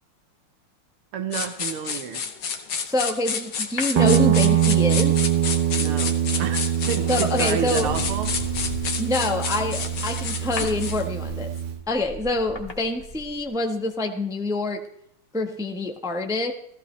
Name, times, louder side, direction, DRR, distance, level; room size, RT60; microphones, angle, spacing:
voice 1, 1.1-2.3 5.7-8.3, right 8 dB, 85° right, 7 dB, 2.0 m, -30 dB
sound 1, 1.3-11.1, left 6 dB, 60° left, 1.6 m, -30 dB
voice 2, 2.8-5.2 7.1-7.9 9.0-11.5 11.9-14.8 15.3-16.5, left 2 dB, 5° right, 4 dB, 0.3 m, -26 dB
sound 2, 3.8-4.8 6.7-6.9 7.4-13.6 13.9-14.0, left 2 dB, 20° left, 1.6 m, -38 dB
Guitar, 3.9-11.8, right 10 dB, 60° right, 1.3 m, -23 dB
15.5 x 15.0 x 3.2 m, 0.72 s
omnidirectional pair, 2.4 m